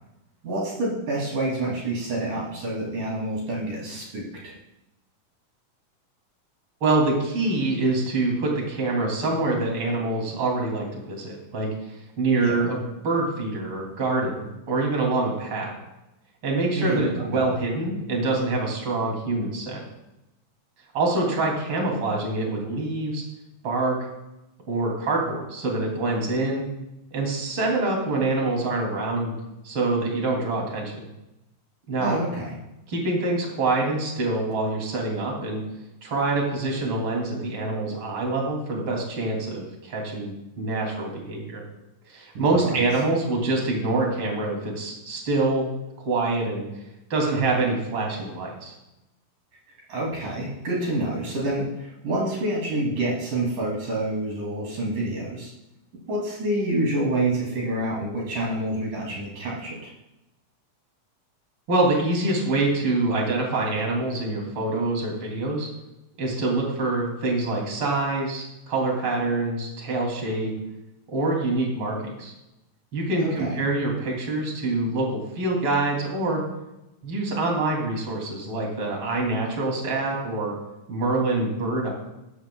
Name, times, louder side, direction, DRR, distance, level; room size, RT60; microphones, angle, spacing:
voice 1, 0.4-4.5 12.4-12.6 16.7-17.5 32.0-32.5 42.3-42.8 49.9-55.5 56.1-59.9 73.2-73.6, right 1 dB, 65° right, -4 dB, 4.4 m, -28 dB
voice 2, 6.8-15.8 16.4-19.8 20.9-23.2 23.6-24.0 24.7-26.6 27.1-29.3 29.6-31.1 31.9-32.2 32.9-35.6 36.0-41.6 42.1-45.7 46.1-46.6 47.1-48.7 61.7-65.7 66.2-70.5 71.1-72.3 72.9-76.4 77.0-80.5 80.9-81.9, right 2 dB, 35° right, -1 dB, 3.5 m, -25 dB
16.5 x 13.5 x 2.3 m, 0.93 s
omnidirectional pair, 4.1 m